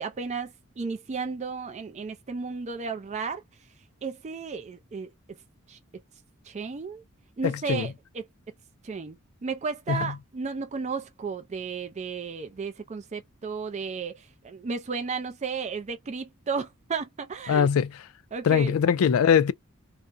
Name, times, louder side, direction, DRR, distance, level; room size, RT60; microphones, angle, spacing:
voice 1, 0.0-3.4 4.0-5.1 5.7-5.8 6.4-7.0 7.4-8.3 8.8-9.2 9.4-17.7 18.3-18.8, right 5 dB, 30° right, 0.4 m, -33 dB
voice 2, 7.4-7.9 9.9-10.1 17.5-17.9 18.4-19.5, left 7 dB, 70° left, 0.3 m, -22 dB
2.4 x 2.1 x 2.5 m
head